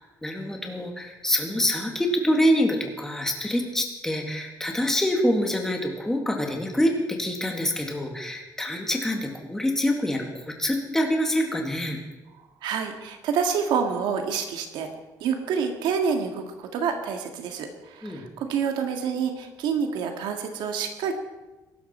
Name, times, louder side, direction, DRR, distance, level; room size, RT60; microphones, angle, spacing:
voice 1, 0.2-12.0 18.0-18.2, equal, 5° left, 1 dB, 2.0 m, -26 dB
voice 2, 12.6-14.9 15.2-21.1, right 6 dB, 85° right, 4 dB, 1.8 m, -27 dB
22.0 x 12.0 x 4.4 m, 1.1 s
cardioid pair, 170°, 8 cm